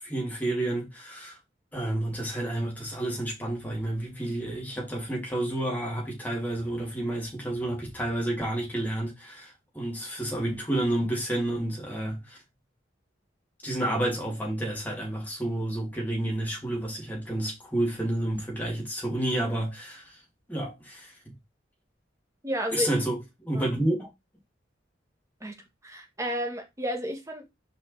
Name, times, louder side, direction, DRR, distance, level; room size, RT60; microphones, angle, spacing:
voice 1, 0.0-1.4 1.7-12.4 13.6-20.2 20.5-21.3 22.7-24.1, right 1 dB, 10° left, 2.4 m, -30 dB
voice 2, 22.4-22.9 23.5-23.7 25.4-25.5 25.8-27.5, equal, 15° right, 1.3 m, -32 dB
6.0 x 5.1 x 3.2 m
head